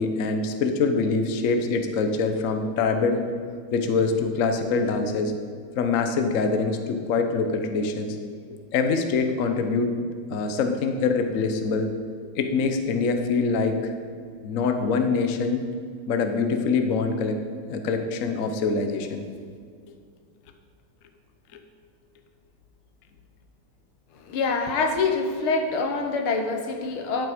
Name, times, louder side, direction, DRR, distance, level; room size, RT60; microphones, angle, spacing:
voice 1, 0.0-3.2 3.7-5.3 5.8-8.2 8.7-9.9 10.3-11.9 12.4-13.9 14.4-15.7 16.1-17.4 17.7-19.2, left 4 dB, 55° left, 6 dB, 1.0 m, -24 dB
voice 2, 24.3-27.3, left 4 dB, 85° left, 4 dB, 1.9 m, -25 dB
11.5 x 7.7 x 5.0 m, 2.1 s
omnidirectional pair, 2.3 m